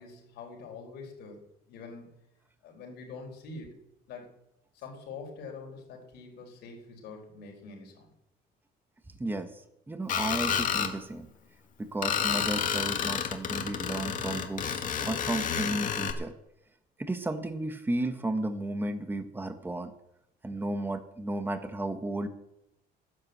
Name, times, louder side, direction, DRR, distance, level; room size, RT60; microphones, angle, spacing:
voice 1, 0.0-1.4 1.7-2.1 2.6-3.7 4.1-4.3 4.7-8.1, left 4 dB, 80° left, 2 dB, 4.8 m, -45 dB
voice 2, 9.2-11.3 11.8-16.3 17.0-19.9 20.4-22.3, right 2 dB, 10° right, 8 dB, 1.3 m, -33 dB
Screech, 10.1-10.9 12.0-16.1, left 8 dB, 50° left, 1.9 m, -30 dB
11.0 x 10.5 x 8.0 m, 0.81 s
cardioid pair, 110°, 17 cm